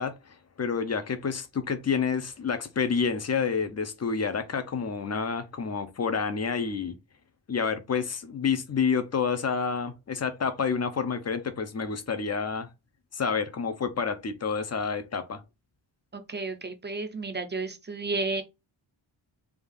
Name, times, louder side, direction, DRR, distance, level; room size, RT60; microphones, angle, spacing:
voice 1, 0.0-7.0 7.5-12.7 13.1-15.4, left 5 dB, 35° left, 0.5 m, -29 dB
voice 2, 16.1-18.4, right 3 dB, 25° right, 0.4 m, -32 dB
3.5 x 2.4 x 3.4 m
wide cardioid pair, 175°, 48 cm